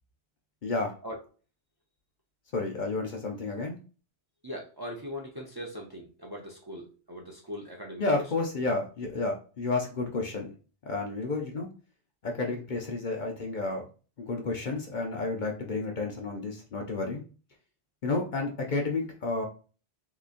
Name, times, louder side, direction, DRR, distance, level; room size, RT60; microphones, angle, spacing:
voice 1, 0.6-0.9 2.5-3.8 8.0-10.5 10.8-11.7 12.2-13.8 14.2-17.2 18.0-19.5, left 3 dB, 50° left, 1 dB, 0.7 m, -31 dB
voice 2, 4.4-8.2, equal, 25° right, -1 dB, 0.5 m, -40 dB
3.8 x 2.9 x 2.5 m, 0.37 s
omnidirectional pair, 1.1 m